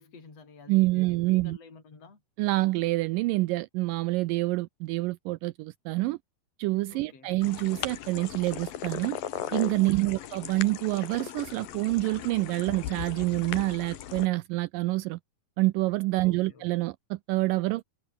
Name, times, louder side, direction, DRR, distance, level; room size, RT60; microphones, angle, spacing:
voice 1, 0.0-2.2 6.9-7.3 9.8-10.2 16.2-16.7, left 4 dB, 40° left, 6.2 m, -50 dB
voice 2, 0.7-1.6 2.4-6.2 6.6-9.2 9.5-15.2 15.6-17.8, right 20 dB, 85° right, 2.0 m, -27 dB
sound 1, 7.4-14.3, left 11 dB, 70° left, 3.4 m, -38 dB
omnidirectional pair, 4.4 m